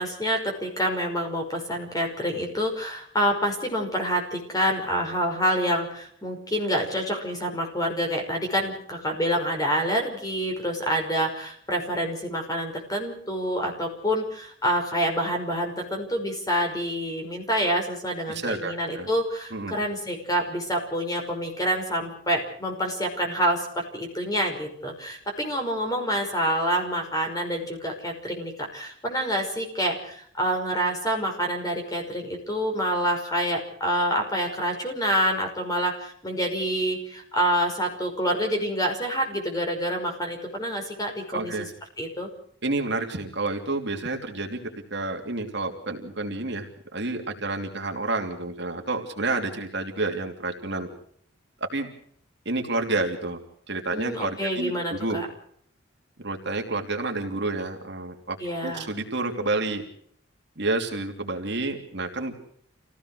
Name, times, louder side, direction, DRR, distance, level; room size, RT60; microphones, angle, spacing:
voice 1, 0.0-41.5 42.0-42.3 53.9-55.3 58.4-58.9, equal, 20° left, 3 dB, 5.5 m, -27 dB
voice 2, 18.3-19.1 19.5-19.7 41.3-41.7 42.6-44.6 44.9-50.9 51.6-51.9 52.4-53.4 53.7-55.2 56.2-58.4 58.6-59.8 60.6-62.5, right 2 dB, 55° right, 3 dB, 3.1 m, -29 dB
27.5 x 17.0 x 6.4 m, 0.65 s
head